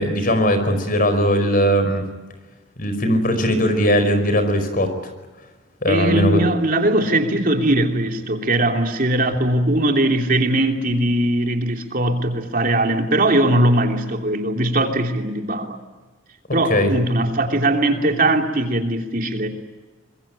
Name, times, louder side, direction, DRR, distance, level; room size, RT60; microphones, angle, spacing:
voice 1, 0.0-2.0 2.8-4.9 5.8-6.5 16.7-16.9, equal, 50° left, 9 dB, 5.0 m, -19 dB
voice 2, 5.9-15.8 16.5-19.5, right 1 dB, 50° right, 4 dB, 3.0 m, -20 dB
25.0 x 22.5 x 8.8 m, 1.2 s
head